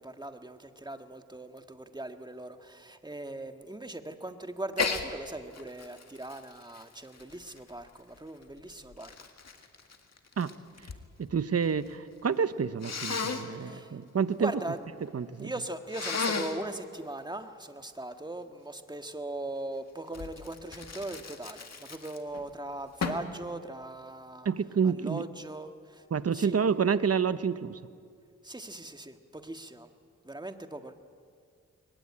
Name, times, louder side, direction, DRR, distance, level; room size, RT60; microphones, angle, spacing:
voice 1, 0.0-9.3 13.6-14.0 14.4-14.8 15.4-24.5 24.8-26.0 26.3-26.6 28.4-29.9 30.2-30.9, right 2 dB, 15° right, 7 dB, 1.7 m, -40 dB
Sneeze, 4.7-5.1 5.5-7.9 8.6-11.0 11.3-11.9 12.8-13.4 15.9-16.6 20.1-22.4 23.0-23.3, left 5 dB, 60° left, 2.0 m, -35 dB
voice 2, 11.2-14.5 15.1-15.5 24.4-25.2 26.1-27.8, right 6 dB, 55° right, 14 dB, 1.0 m, -28 dB
22.0 x 20.0 x 8.8 m, 2.2 s
cardioid pair, 50°, 30 cm